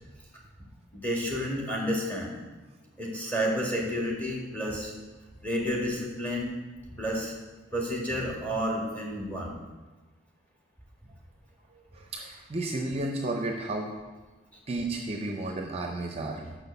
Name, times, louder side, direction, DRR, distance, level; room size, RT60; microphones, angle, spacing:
voice 1, 1.0-2.3 3.0-4.9 5.4-6.6 7.0-7.3 7.7-9.6, equal, 10° left, -2 dB, 1.9 m, -30 dB
voice 2, 11.9-13.9 14.7-16.6, right 2 dB, 35° right, 2 dB, 0.7 m, -32 dB
6.2 x 6.1 x 6.8 m, 1.2 s
head